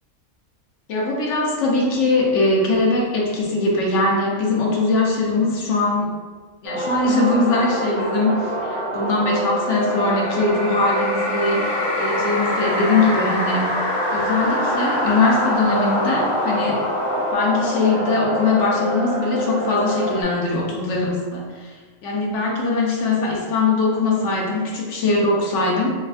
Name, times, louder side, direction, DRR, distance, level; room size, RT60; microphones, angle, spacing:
voice 1, 0.9-6.1 6.6-13.7 14.1-16.8 17.3-21.8 22.0-25.9, left 3 dB, 70° left, -2 dB, 1.0 m, -21 dB
sound 1, 6.6-20.2, equal, 45° right, 1.5 m, -27 dB
sound 2, 9.6-19.3, left 1 dB, 45° left, 0.8 m, -26 dB
4.3 x 2.3 x 2.4 m, 1.4 s
omnidirectional pair, 1.3 m